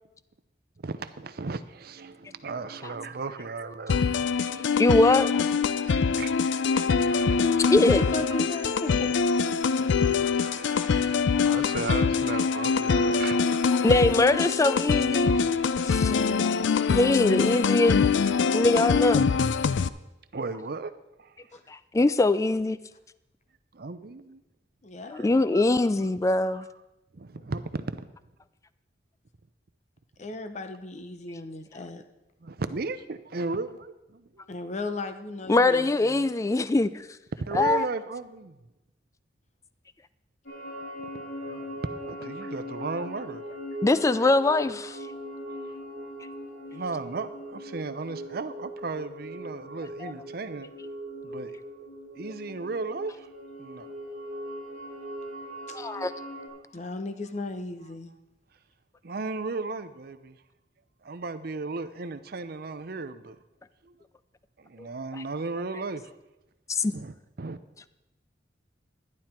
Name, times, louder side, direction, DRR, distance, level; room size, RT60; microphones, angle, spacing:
voice 1, 0.8-4.3 5.0-5.4 5.8-6.3 6.7-7.1 8.3-8.4 10.4-13.8 20.3-20.9 21.2-21.3 23.7-24.4 25.1-25.3 25.5-25.6 26.4-26.7 27.1-28.0 32.4-34.4 37.5-38.6 41.5-41.8 42.1-43.4 46.7-50.7 51.2-51.6 52.2-53.3 53.6-53.9 59.0-60.4 61.0-63.4 63.8-63.9 64.6-66.1 66.9-67.6, right 3 dB, 55° right, 11 dB, 0.7 m, -35 dB
sound 1, 3.9-19.9, left 5 dB, 90° left, 0.4 m, -24 dB
voice 2, 4.4-5.3 7.1-7.3 7.7-8.0 11.4-11.6 13.8-15.4 15.8-16.1 16.9-18.1 18.5-19.3 21.7-22.8 25.2-26.7 35.5-37.1 37.5-37.9 43.8-45.0 50.0-50.1 55.7-56.1 64.8-64.9 66.7-66.9, left 2 dB, 15° left, 15 dB, 0.3 m, -23 dB
voice 3, 7.8-9.1 9.8-10.6 13.0-13.1 16.0-16.8 17.2-17.4 21.5-21.6 24.8-25.3 30.2-32.0 34.5-36.2 55.7-55.8 56.7-58.1, left 2 dB, 40° left, 8 dB, 0.8 m, -36 dB
sound 2, 40.5-56.5, equal, 75° left, 3.8 m, -40 dB
11.5 x 11.0 x 4.4 m, 0.96 s
head